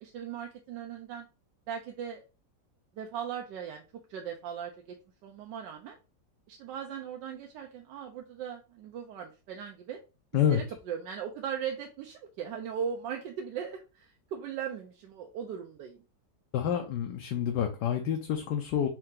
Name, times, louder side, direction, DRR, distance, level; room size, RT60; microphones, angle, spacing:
voice 1, 0.0-1.3 1.7-2.2 2.9-3.8 4.1-5.0 5.2-6.0 6.5-10.0 10.5-16.0, right 8 dB, 85° right, 3 dB, 1.2 m, -38 dB
voice 2, 16.5-18.9, left 9 dB, 75° left, 4 dB, 1.2 m, -28 dB
4.5 x 2.7 x 3.7 m, 0.32 s
omnidirectional pair, 1.9 m